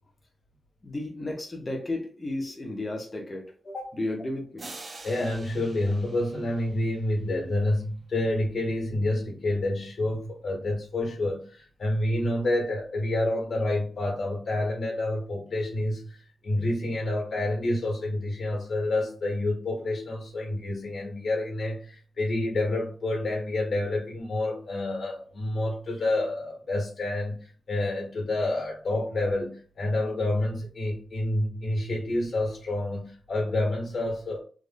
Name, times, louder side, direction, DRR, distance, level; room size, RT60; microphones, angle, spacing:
voice 1, 0.8-4.7, left 2 dB, 25° left, 0 dB, 0.7 m, -33 dB
sound 1, 4.6-7.4, right 2 dB, 35° right, 0.6 m, -46 dB
voice 2, 5.0-34.4, left 1 dB, 60° left, -2 dB, 1.5 m, -28 dB
3.4 x 2.4 x 2.5 m, 0.40 s
wide cardioid pair, 120°, 0 cm